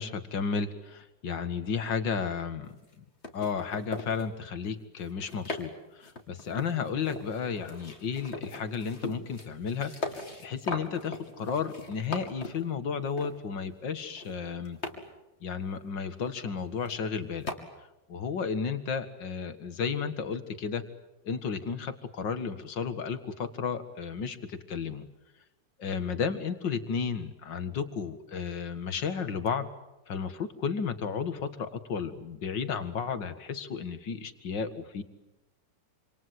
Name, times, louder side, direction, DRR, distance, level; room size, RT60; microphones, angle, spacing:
voice 1, 0.0-2.7 3.3-9.9 10.4-14.8 15.4-17.5 18.1-20.8 21.2-25.1 25.8-29.7 30.1-35.0, left 6 dB, 80° left, 10 dB, 2.5 m, -33 dB
sound 1, 2.7-2.9 3.2-4.3 5.0-5.7 6.0-12.6 13.2-13.3 14.1-15.0 16.5-16.6 16.8-17.1 17.5-17.6, left 2 dB, 35° left, 3.2 m, -39 dB
27.0 x 27.0 x 7.8 m, 0.97 s
omnidirectional pair, 1.9 m